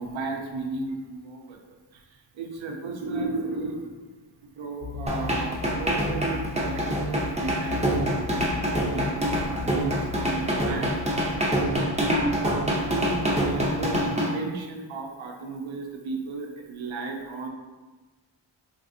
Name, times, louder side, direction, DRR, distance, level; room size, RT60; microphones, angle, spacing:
voice 1, 0.0-3.9 4.6-11.0 12.6-17.5, right 3 dB, 85° right, 2 dB, 0.5 m, -35 dB
sound 1, 4.8-14.1, left 4 dB, 75° left, 0.5 m, -37 dB
sound 2, 5.1-14.3, right 1 dB, 15° right, 0.4 m, -25 dB
3.2 x 2.5 x 2.5 m, 1.3 s
wide cardioid pair, 105°, 45 cm